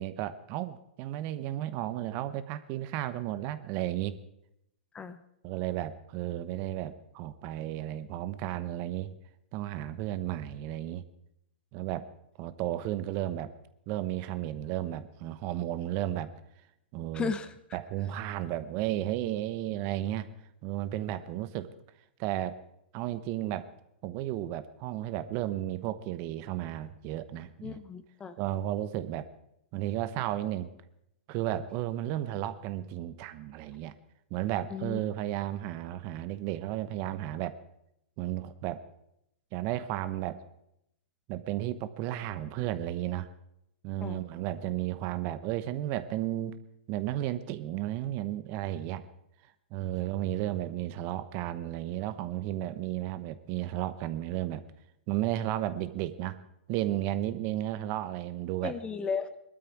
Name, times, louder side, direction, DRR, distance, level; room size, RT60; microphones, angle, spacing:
voice 1, 0.0-4.2 5.4-9.1 9.5-11.0 11.7-12.0 12.4-13.5 13.9-16.3 16.9-17.3 17.7-20.3 20.6-21.7 22.2-22.6 22.9-23.7 24.0-27.8 28.4-29.3 29.7-30.7 31.3-33.9 34.3-37.6 38.2-38.8 39.5-40.4 41.3-43.3 43.8-46.6 46.9-49.1 49.7-54.6 55.1-56.4 56.7-58.7, right 13 dB, 40° right, 13 dB, 1.0 m, -33 dB
voice 2, 17.1-17.5 27.6-28.4 34.7-35.0 44.0-44.2 58.6-59.4, left 5 dB, 15° left, 13 dB, 0.8 m, -34 dB
19.0 x 12.5 x 4.7 m, 0.78 s
hypercardioid pair, 130°, 6 cm